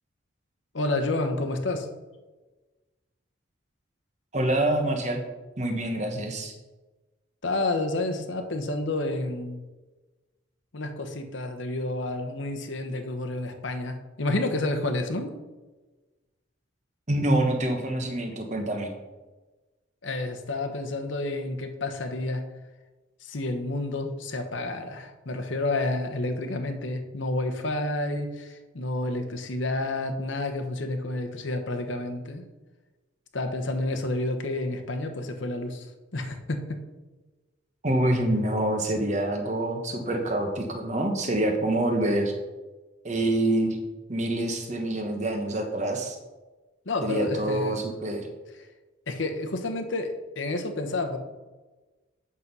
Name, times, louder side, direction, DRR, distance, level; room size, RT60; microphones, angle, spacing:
voice 1, 0.7-1.9 7.4-9.6 10.7-15.3 20.0-22.4 23.2-32.5 33.3-36.8 46.9-47.8 49.1-51.2, left 2 dB, 75° left, 5 dB, 1.0 m, -30 dB
voice 2, 4.3-5.2 5.6-6.5 17.1-18.9 37.8-42.3 43.0-43.8 44.1-46.2 47.0-48.3, right 1 dB, 35° right, 4 dB, 1.2 m, -26 dB
8.4 x 6.1 x 5.5 m, 1.2 s
head